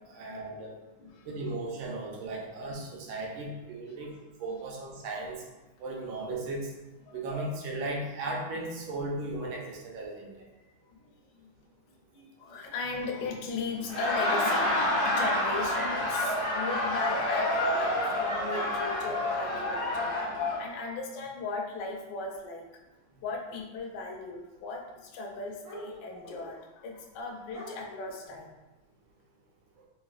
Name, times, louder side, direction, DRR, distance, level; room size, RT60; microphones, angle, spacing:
voice 1, 0.1-0.8 1.2-4.1 4.4-5.4 5.8-6.7 7.1-10.3, right 2 dB, 80° right, -1 dB, 1.4 m, -36 dB
voice 2, 1.0-1.4 4.5-4.6 7.1-7.2 10.9-11.1 11.4-11.5 12.1-20.2 20.4-22.6 23.1-28.6, left 3 dB, 70° left, -1 dB, 1.1 m, -37 dB
Laughter, 13.8-20.6, left 1 dB, 85° left, 0.5 m, -28 dB
sound 1, 21.3-21.4 23.9-24.0 25.6-26.4 27.1-27.2 27.5-28.3, left 1 dB, 35° right, 0.5 m, -46 dB
4.0 x 2.0 x 2.4 m, 1.1 s
omnidirectional pair, 2.2 m